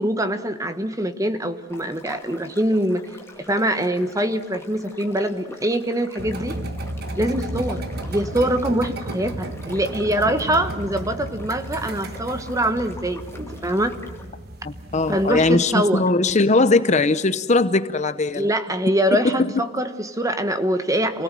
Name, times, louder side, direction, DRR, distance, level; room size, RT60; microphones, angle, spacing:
voice 1, 0.0-3.0 3.4-6.6 7.2-7.8 8.1-14.0 15.1-16.0 18.3-21.2, right 1 dB, 15° right, 9 dB, 1.2 m, -23 dB
sound 1, 1.7-14.3, left 2 dB, 15° left, 2.2 m, -44 dB
sound 2, 6.2-15.6, right 1 dB, 50° right, 1.4 m, -33 dB
voice 2, 14.6-18.5 19.2-19.4, left 3 dB, 35° left, 12 dB, 0.8 m, -20 dB
28.0 x 17.5 x 7.7 m, 1.4 s
head